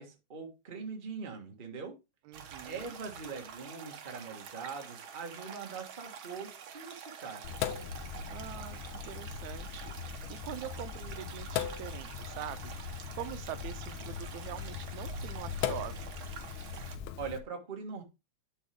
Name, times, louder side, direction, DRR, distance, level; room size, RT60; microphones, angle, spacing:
voice 1, 0.0-2.0 2.7-7.5 17.2-18.0, right 5 dB, 25° right, 1.2 m, -42 dB
sound 1, 2.3-17.0, right 7 dB, 55° right, 1.5 m, -48 dB
voice 2, 2.3-2.9 8.3-16.1, right 12 dB, 80° right, 1.9 m, -44 dB
Sink (filling or washing), 7.4-17.4, left 8 dB, 80° left, 2.1 m, -39 dB
11.0 x 5.6 x 3.5 m
omnidirectional pair, 3.4 m